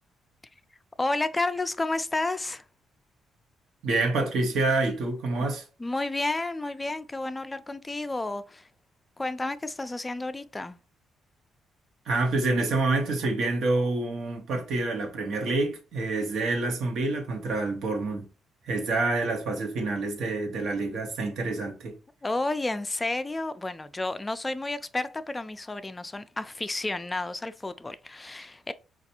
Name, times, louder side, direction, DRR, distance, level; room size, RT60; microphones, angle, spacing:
voice 1, 1.0-2.6 5.8-8.7 9.2-10.8 22.2-28.7, left 2 dB, 20° left, 0.3 m, -31 dB
voice 2, 3.8-5.6 12.1-18.3 18.6-22.0, right 3 dB, 75° right, 1.0 m, -27 dB
4.4 x 2.4 x 2.8 m
cardioid pair, 90°, 0 cm